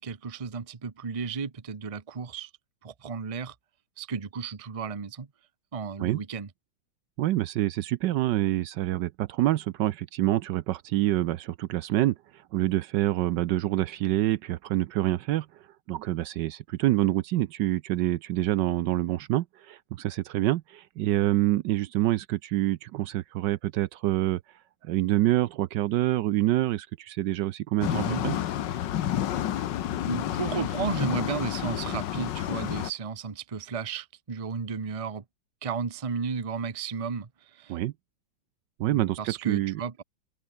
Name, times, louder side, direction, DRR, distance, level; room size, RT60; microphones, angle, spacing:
voice 1, 0.0-2.5 2.8-3.5 4.0-5.3 5.7-6.5 27.9-28.2 30.1-35.2 35.6-37.8 38.9-40.0, right 5 dB, 25° right, 0.7 m, -33 dB
voice 2, 7.2-12.2 12.5-15.5 15.9-24.4 24.8-28.4 37.7-37.9 38.8-39.8, right 15 dB, 70° right, 1.2 m, -26 dB
sound 1, 27.8-32.9, left 11 dB, 70° left, 1.6 m, -30 dB
open air
omnidirectional pair, 2.1 m